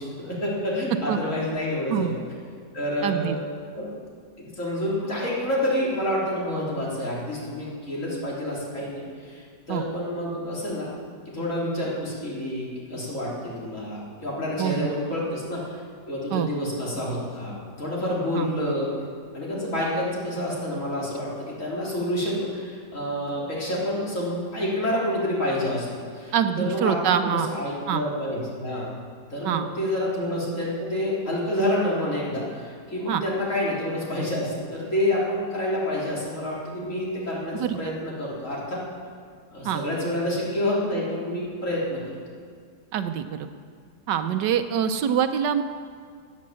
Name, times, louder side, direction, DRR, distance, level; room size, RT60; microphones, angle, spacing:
voice 1, 0.0-2.2 2.7-3.4 3.8-3.9 4.4-10.9 11.3-15.8 16.1-18.9 19.3-25.9 26.1-28.9 29.3-38.8 39.5-42.0, left 1 dB, 45° left, -6 dB, 4.1 m, -28 dB
voice 2, 3.0-3.4 9.7-9.8 14.6-14.9 16.3-16.5 18.3-18.5 26.3-27.5 27.9-28.0 29.4-29.7 33.1-33.2 37.5-37.9 39.6-39.8 42.9-43.5 44.1-45.6, right 9 dB, 80° right, 9 dB, 1.3 m, -25 dB
17.5 x 8.6 x 7.6 m, 2.1 s
omnidirectional pair, 1.9 m